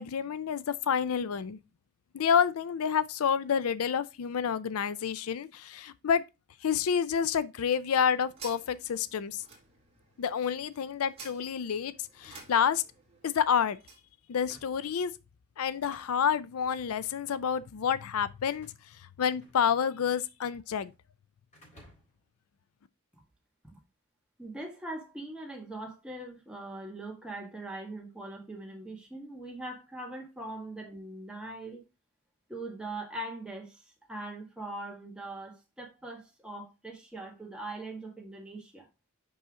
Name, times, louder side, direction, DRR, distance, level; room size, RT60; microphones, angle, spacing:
voice 1, 0.0-1.6 2.1-6.2 6.6-9.4 10.2-12.8 13.2-13.8 14.3-15.1 15.6-20.9, left 7 dB, 80° left, 0.4 m, -29 dB
sound 1, 7.5-14.1, right 4 dB, 30° right, 1.8 m, -53 dB
sound 2, 12.1-13.3 14.3-14.9 15.6-16.4 17.2-17.6 18.5-20.0 20.2-21.0 21.5-22.3, equal, 35° left, 4.1 m, -59 dB
voice 2, 24.4-31.8 32.5-38.9, right 2 dB, 5° right, 1.6 m, -41 dB
5.5 x 5.5 x 3.6 m
head